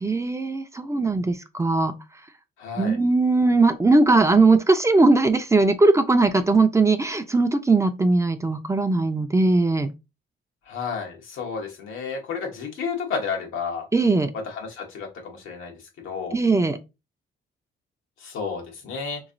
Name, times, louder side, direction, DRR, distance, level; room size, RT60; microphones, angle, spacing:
voice 1, 0.0-2.0 2.8-9.9 13.9-14.3 16.3-16.8, right 3 dB, 15° right, 0.4 m, -19 dB
voice 2, 2.6-3.0 10.7-13.9 14.3-15.7 16.0-16.4 18.2-19.2, left 5 dB, 90° left, 1.1 m, -31 dB
3.6 x 3.0 x 2.5 m
cardioid pair, 90°, 20 cm